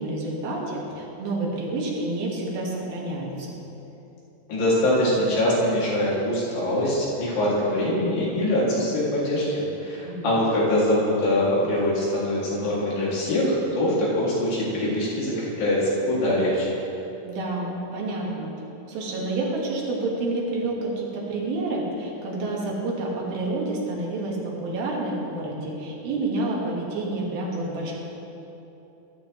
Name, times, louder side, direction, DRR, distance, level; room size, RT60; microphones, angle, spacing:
voice 1, 0.0-3.6 10.0-10.3 17.3-18.5 18.9-27.9, right 2 dB, 90° right, -3 dB, 3.5 m, -29 dB
voice 2, 4.5-16.7, left 1 dB, 75° left, -7 dB, 4.3 m, -23 dB
13.5 x 13.0 x 3.2 m, 3.0 s
omnidirectional pair, 4.1 m